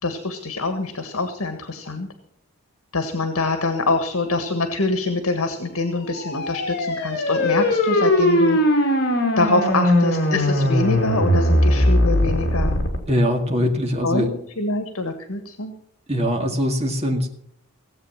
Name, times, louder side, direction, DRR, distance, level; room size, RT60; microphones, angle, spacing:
voice 1, 0.0-2.1 2.9-8.9 9.4-12.9 14.0-15.7, left 2 dB, 80° left, 7 dB, 1.6 m, -25 dB
sound 1, 6.1-13.0, left 1 dB, 50° left, 3.1 m, -19 dB
voice 2, 13.1-14.3 16.1-17.3, equal, 30° right, 2 dB, 2.1 m, -22 dB
17.5 x 8.1 x 7.4 m, 0.67 s
head